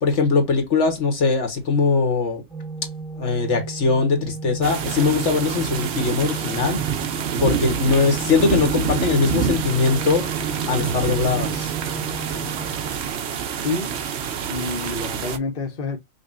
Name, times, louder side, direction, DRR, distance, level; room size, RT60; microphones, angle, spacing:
voice 1, 0.0-2.4 3.2-6.8 7.4-10.3 10.7-11.7, left 4 dB, 70° left, 1.6 m, -21 dB
Organ, 2.5-13.4, right 3 dB, 5° left, 1.4 m, -35 dB
sound 1, 4.6-15.4, right 7 dB, 60° right, 1.0 m, -27 dB
voice 2, 13.6-14.0 14.5-16.0, left 3 dB, 45° left, 1.2 m, -28 dB
5.3 x 2.5 x 2.5 m
omnidirectional pair, 1.3 m